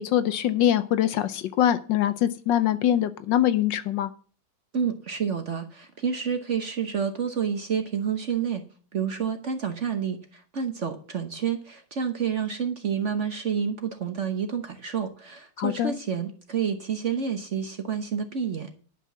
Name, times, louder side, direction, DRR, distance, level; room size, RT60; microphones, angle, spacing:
voice 1, 0.0-4.1 15.6-15.9, left 11 dB, 75° left, 1.3 m, -23 dB
voice 2, 4.7-8.6 8.9-18.7, right 7 dB, 45° right, 1.0 m, -29 dB
10.0 x 5.9 x 7.1 m
omnidirectional pair, 2.2 m